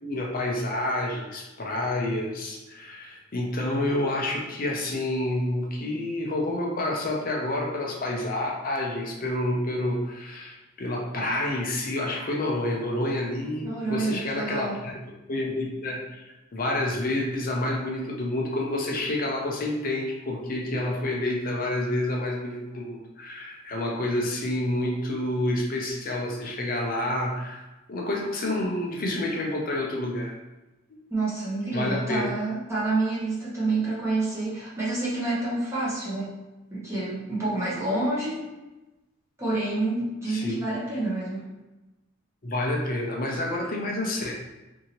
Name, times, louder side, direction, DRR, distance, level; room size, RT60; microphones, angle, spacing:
voice 1, 0.0-14.9 15.3-16.2 16.5-30.3 31.7-32.2 40.3-40.6 42.4-44.3, left 1 dB, 40° left, -1 dB, 0.5 m, -28 dB
voice 2, 13.6-14.8 31.1-36.3 36.7-38.4 39.4-41.5, right 2 dB, 15° right, -8 dB, 0.8 m, -28 dB
2.7 x 2.7 x 2.8 m, 1.0 s
head